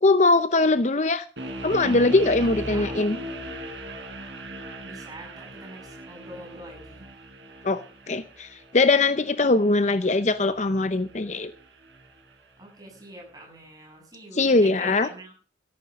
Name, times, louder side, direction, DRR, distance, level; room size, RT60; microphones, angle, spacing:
voice 1, 0.0-1.3 1.6-3.2 7.6-7.8 8.1-11.5 14.3-15.1, left 3 dB, 40° left, 12 dB, 0.6 m, -21 dB
sound 1, 1.4-12.4, right 1 dB, 70° right, 4.6 m, -39 dB
voice 2, 2.4-3.0 4.8-7.0 12.6-15.3, right 1 dB, 20° right, 0 dB, 6.8 m, -44 dB
13.5 x 11.0 x 6.2 m, 0.39 s
head